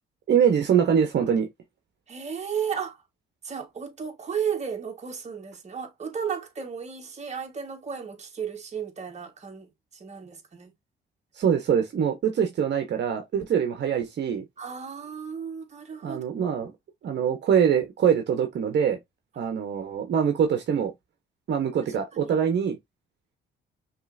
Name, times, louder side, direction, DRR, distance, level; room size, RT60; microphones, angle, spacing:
voice 1, 0.3-1.5 11.3-14.4 16.0-16.7 17.0-19.0 19.4-20.9 21.5-22.8, right 8 dB, 60° right, 1.1 m, -24 dB
voice 2, 2.1-3.0 3.4-9.7 10.0-10.7 14.6-16.2 22.2-22.4, right 7 dB, 35° right, 1.5 m, -34 dB
5.5 x 3.2 x 2.6 m
cardioid pair, 90°, 20 cm